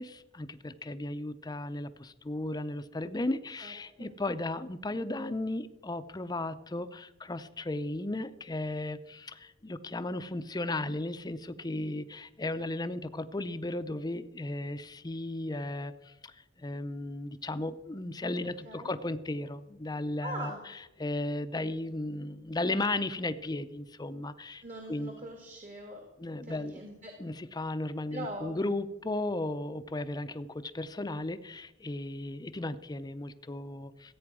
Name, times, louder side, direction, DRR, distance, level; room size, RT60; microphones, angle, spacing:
voice 1, 0.0-24.6 24.9-25.1 26.2-26.8 27.2-34.1, left 2 dB, 20° left, 12 dB, 0.6 m, -35 dB
voice 2, 3.6-4.1 18.6-19.0 20.2-20.6 24.6-26.1 26.4-27.1 28.1-28.6, right 1 dB, 45° right, 3 dB, 1.9 m, -42 dB
14.5 x 8.7 x 6.2 m, 0.94 s
head